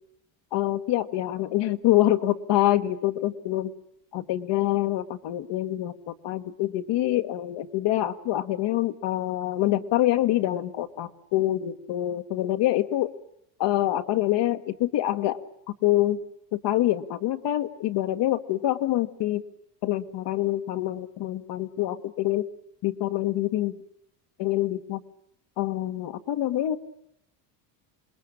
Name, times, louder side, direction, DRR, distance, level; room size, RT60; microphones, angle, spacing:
voice 1, 0.5-3.7 4.1-13.1 13.6-15.4 15.8-16.2 16.5-19.4 19.8-22.5 22.8-23.7 24.4-25.0 25.6-26.8, left 14 dB, 60° left, 8 dB, 1.9 m, -25 dB
27.5 x 20.5 x 8.9 m, 0.77 s
supercardioid pair, 100°, 48 cm